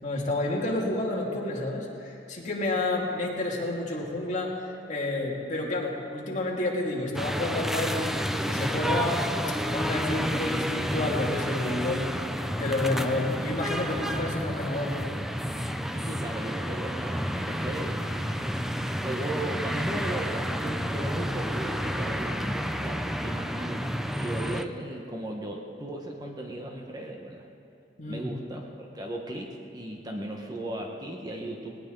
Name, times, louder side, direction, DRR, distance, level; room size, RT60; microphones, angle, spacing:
voice 1, 0.0-4.6 4.9-8.1 8.4-9.2 9.7-15.1 28.0-28.3, left 2 dB, 45° left, -2 dB, 2.5 m, -30 dB
sound 1, 7.1-24.6, equal, ahead, 0.5 m, -30 dB
voice 2, 15.9-18.7 19.0-23.9 24.2-27.5 28.1-31.8, right 1 dB, 20° right, 1 dB, 1.2 m, -36 dB
19.5 x 19.0 x 3.9 m, 2.8 s
head